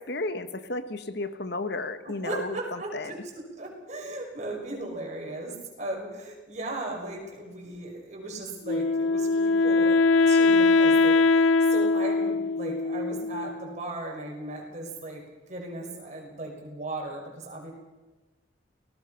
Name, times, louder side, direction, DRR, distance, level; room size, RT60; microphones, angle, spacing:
voice 1, 0.0-3.1, left 2 dB, 60° left, 10 dB, 1.2 m, -33 dB
voice 2, 2.0-3.2 3.6-15.2 15.5-17.7, right 2 dB, 40° right, 1 dB, 5.7 m, -37 dB
Wind instrument woodwind instrument, 8.7-13.7, left 3 dB, 90° left, 0.7 m, -22 dB
29.0 x 19.0 x 5.8 m, 1.2 s
head